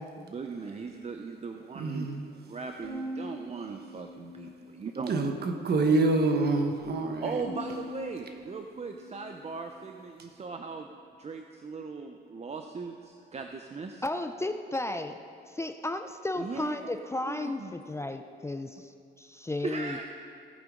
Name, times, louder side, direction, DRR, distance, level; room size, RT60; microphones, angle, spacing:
voice 1, 0.2-5.2 7.2-10.9 11.2-14.0 16.4-17.0 17.3-17.7 19.6-20.0, right 4 dB, 35° right, 4 dB, 0.7 m, -39 dB
voice 2, 1.7-2.3 5.1-7.4, right 3 dB, 55° right, 5 dB, 1.3 m, -26 dB
Bowed string instrument, 2.8-5.2 5.6-6.4 7.4-9.9, left 1 dB, 80° right, 1.8 m, -43 dB
voice 3, 14.0-15.2 15.5-18.9 19.2-20.0, left 2 dB, 15° left, 7 dB, 0.5 m, -34 dB
16.5 x 9.0 x 3.8 m, 2.2 s
cardioid pair, 90°, 20 cm